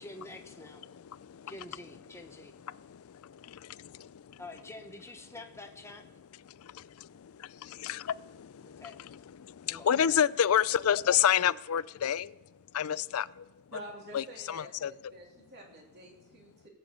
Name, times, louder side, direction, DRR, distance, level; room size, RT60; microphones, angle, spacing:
voice 1, 0.0-0.8 1.5-2.5 4.4-6.0 8.6-9.0 9.6-10.2, left 2 dB, 15° left, 1.0 m, -47 dB
voice 2, 0.6-1.7 2.1-4.4 6.4-13.6 14.1-15.1, left 9 dB, 85° left, 0.4 m, -31 dB
voice 3, 13.7-16.7, equal, 50° right, 3.1 m, -48 dB
18.0 x 7.0 x 8.3 m
head